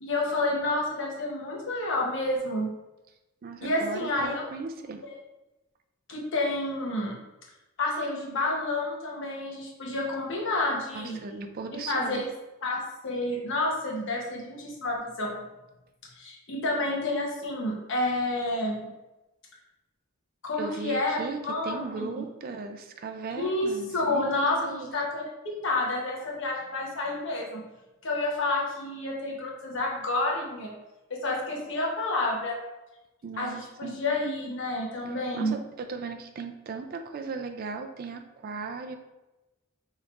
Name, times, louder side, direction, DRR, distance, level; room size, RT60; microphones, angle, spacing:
voice 1, 0.0-2.7 3.6-4.4 5.0-5.1 6.1-7.2 7.8-11.2 11.7-12.3 12.6-15.4 16.2-18.9 20.4-21.2 21.4-22.2 23.3-27.6 28.0-30.8 31.1-32.6 33.4-35.6, left 2 dB, 65° left, -2 dB, 1.0 m, -29 dB
voice 2, 3.4-5.0 10.9-12.2 20.6-25.0 33.2-34.0 35.1-39.0, right 4 dB, 45° right, 6 dB, 0.4 m, -37 dB
5.0 x 3.1 x 2.4 m, 1.0 s
head